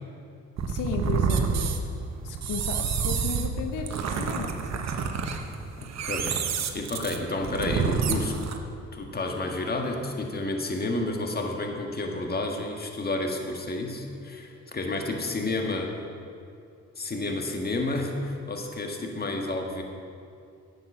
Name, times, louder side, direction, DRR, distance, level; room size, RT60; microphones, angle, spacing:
sound 1, 0.6-8.6, right 6 dB, 60° right, 1.1 m, -28 dB
voice 1, 0.7-1.8 2.2-5.1, left 6 dB, 85° left, 5 dB, 0.9 m, -35 dB
voice 2, 5.8-6.4 6.7-8.4 8.9-15.9 17.0-19.8, left 2 dB, 30° left, 2 dB, 1.6 m, -30 dB
11.5 x 8.0 x 6.0 m, 2.5 s
cardioid pair, 90°, 30 cm